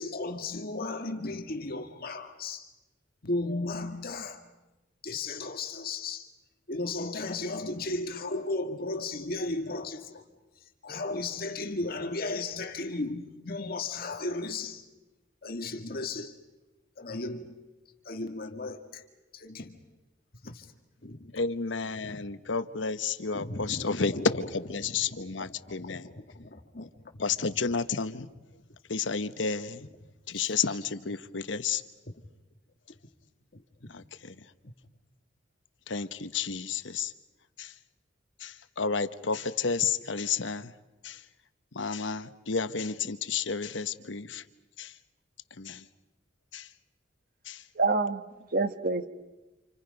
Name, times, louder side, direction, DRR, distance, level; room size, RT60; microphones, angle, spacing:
voice 1, 0.0-2.7 3.2-4.4 5.0-6.3 6.7-10.2 10.8-14.8 15.4-16.3 17.0-17.6 18.1-19.0 19.3-19.8 20.4-20.7 21.0-21.3 22.0-22.2 23.3-24.3 25.1-25.2 25.7-27.2 30.3-30.6 33.5-33.6, left 2 dB, 55° left, 1.8 m, -35 dB
voice 2, 21.3-26.1 26.8-26.9 27.2-28.3 28.9-29.8 30.3-31.8 33.9-34.5 35.9-37.1 37.6-37.7 38.4-40.7 41.0-41.2 41.7-44.4 44.8-45.0 45.6-45.9 46.5-46.7 47.4-47.6, left 5 dB, 90° left, 1.0 m, -31 dB
voice 3, 47.7-49.1, right 3 dB, 50° right, 1.3 m, -27 dB
29.0 x 28.0 x 5.3 m
head